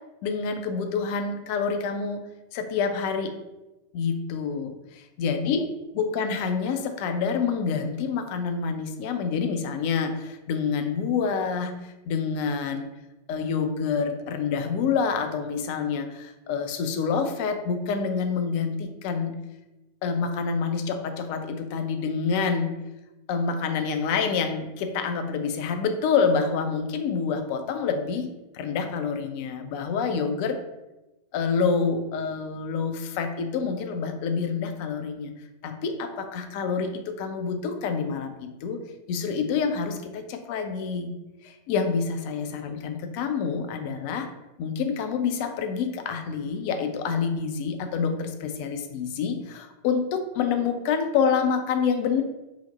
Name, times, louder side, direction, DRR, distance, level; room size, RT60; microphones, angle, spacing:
voice 1, 0.2-2.2 2.5-3.3 3.9-5.7 5.9-12.9 13.3-19.3 20.0-22.7 23.3-28.3 28.5-30.6 31.3-35.3 35.6-38.8 39.1-41.1 41.4-44.3 44.6-52.2, left 5 dB, 45° left, 7 dB, 0.4 m, -27 dB
2.8 x 2.1 x 4.1 m, 1.0 s
figure-of-eight pair, 90°, 0 cm